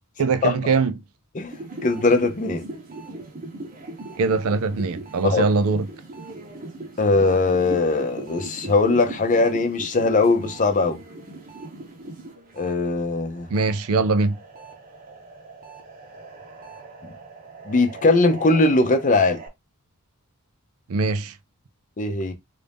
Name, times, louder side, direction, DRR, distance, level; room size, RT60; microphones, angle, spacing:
voice 1, 0.2-0.9 4.2-5.9 13.5-14.4 20.9-21.4, right 4 dB, 70° right, 0.4 m, -22 dB
sound 1, 1.5-12.8 13.1-19.5, right 2 dB, 40° right, 0.9 m, -40 dB
voice 2, 1.8-2.6 5.2-5.4 7.0-11.0 12.6-13.5 17.7-19.4 22.0-22.3, left 3 dB, 35° left, 0.6 m, -20 dB
3.2 x 2.6 x 3.4 m
head